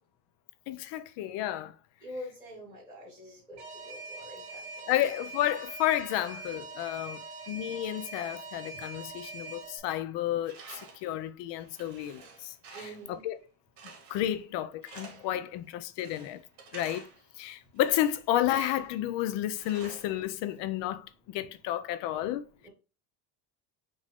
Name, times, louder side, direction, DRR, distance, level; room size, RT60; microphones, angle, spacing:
voice 1, 0.7-1.7 4.9-7.2 7.5-13.4 14.1-16.4 16.7-17.1 17.4-22.4, left 12 dB, 65° left, 0.6 m, -31 dB
voice 2, 2.0-4.8 12.7-13.2 22.6-22.7, equal, 5° right, 1.9 m, -45 dB
Alarm, 3.6-9.8, right 3 dB, 45° right, 1.5 m, -43 dB
Tools, 10.4-11.1 11.6-13.1 13.8-14.4 14.8-15.4 16.0-17.2 17.8-19.0 19.5-20.6, right 5 dB, 60° right, 1.7 m, -50 dB
5.2 x 2.7 x 3.5 m
cardioid pair, 155°, 46 cm